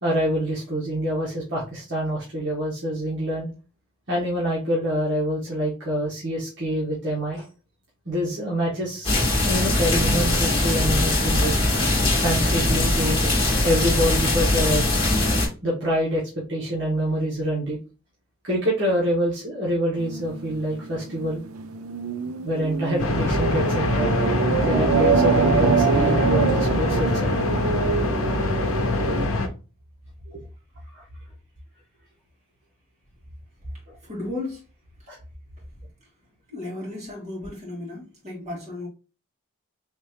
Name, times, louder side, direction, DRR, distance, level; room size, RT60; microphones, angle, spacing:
voice 1, 0.0-3.5 4.1-7.4 8.0-11.5 12.2-13.3 13.6-14.9 15.6-17.8 18.4-21.4 22.4-24.2 24.5-27.4 30.3-30.4 30.9-31.0 35.1-35.2, equal, 55° right, 1.5 m, -26 dB
sound 1, 9.0-15.5, left 2 dB, 25° left, 1.6 m, -21 dB
sound 2, 20.0-29.3, right 6 dB, 85° right, 0.4 m, -25 dB
sound 3, 23.0-29.5, left 2 dB, 70° left, 0.7 m, -24 dB
voice 2, 34.0-34.6 36.5-38.9, left 2 dB, 35° right, 2.2 m, -34 dB
4.3 x 3.2 x 3.1 m
head